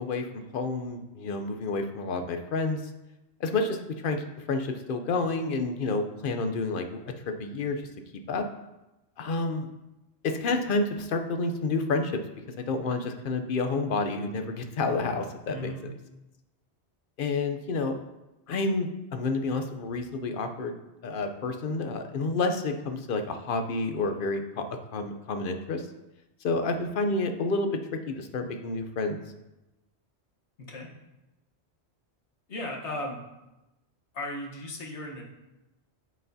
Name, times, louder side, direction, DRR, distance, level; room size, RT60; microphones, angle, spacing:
voice 1, 0.0-2.8 3.4-3.8 4.0-6.9 7.3-7.8 8.3-8.5 9.2-9.7 10.2-12.2 12.7-15.7 17.2-18.0 18.5-20.7 21.0-24.6 24.9-25.8 26.4-27.8 28.1-29.2, left 3 dB, 55° left, 7 dB, 0.8 m, -29 dB
voice 2, 15.5-15.8 30.6-30.9 32.5-33.2 34.1-35.2, left 1 dB, 85° left, -1 dB, 1.5 m, -36 dB
8.0 x 7.5 x 2.7 m, 0.99 s
omnidirectional pair, 1.1 m